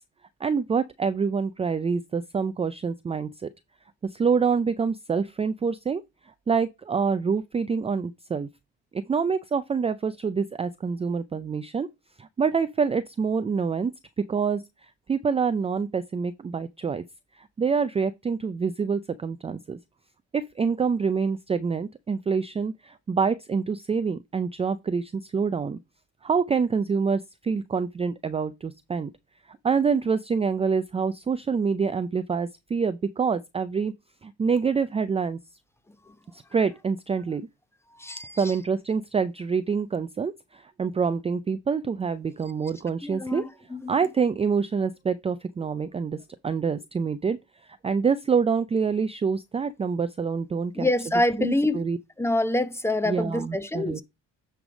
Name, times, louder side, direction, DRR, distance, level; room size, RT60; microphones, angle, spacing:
voice 1, 0.4-3.5 4.0-6.0 6.5-8.5 8.9-11.9 12.2-13.9 14.3-14.6 15.1-17.0 17.4-19.8 20.3-25.8 26.2-29.1 29.6-33.9 34.2-35.4 36.3-37.5 38.4-43.4 43.9-46.2 46.4-47.4 47.8-50.9 51.4-52.0 53.0-54.0, right 5 dB, 20° right, 0.4 m, -26 dB
voice 2, 38.0-38.4 43.0-43.4 43.7-43.9 50.8-51.8 52.2-54.0, left 1 dB, 10° left, 0.9 m, -25 dB
9.6 x 3.4 x 5.0 m
cardioid pair, 90°, 30 cm